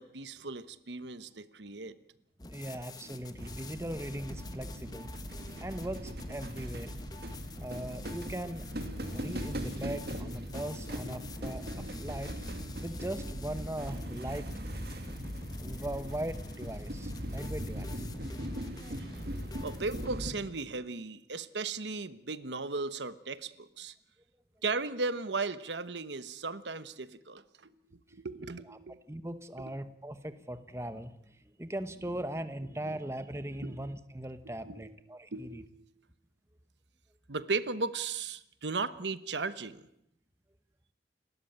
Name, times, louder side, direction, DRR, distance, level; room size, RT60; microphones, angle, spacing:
voice 1, 0.0-1.9 19.1-19.3 19.6-23.9 24.6-27.7 28.1-29.0 29.6-29.7 32.0-32.1 33.6-33.9 34.6-35.0 35.3-35.8 37.3-39.8, right 4 dB, 90° right, 14 dB, 1.1 m, -36 dB
sound 1, 2.4-20.1, left 3 dB, 20° left, 1.1 m, -49 dB
voice 2, 2.5-5.1 5.6-6.9 7.6-8.7 9.1-12.3 12.8-14.5 15.6-17.9 28.7-28.8 29.1-35.6, right 1 dB, 15° right, 11 dB, 1.0 m, -39 dB
sound 2, 3.4-20.3, equal, 60° right, 2.5 m, -39 dB
29.0 x 13.5 x 8.8 m, 0.79 s
head